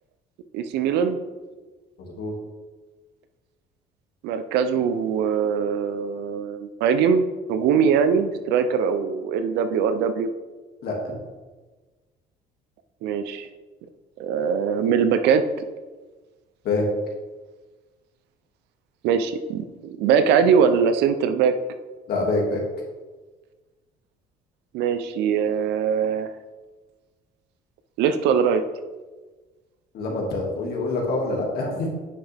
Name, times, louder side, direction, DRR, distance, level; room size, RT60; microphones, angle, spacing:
voice 1, 0.5-1.2 4.2-10.3 13.0-13.5 14.2-15.6 19.0-21.5 24.7-26.3 28.0-28.6, right 7 dB, 90° right, 10 dB, 0.7 m, -22 dB
voice 2, 2.0-2.3 10.8-11.2 16.6-16.9 22.1-22.6 29.9-31.9, left 2 dB, 70° left, -1 dB, 2.4 m, -26 dB
9.6 x 5.9 x 3.5 m, 1.3 s
cardioid pair, 110°, 17 cm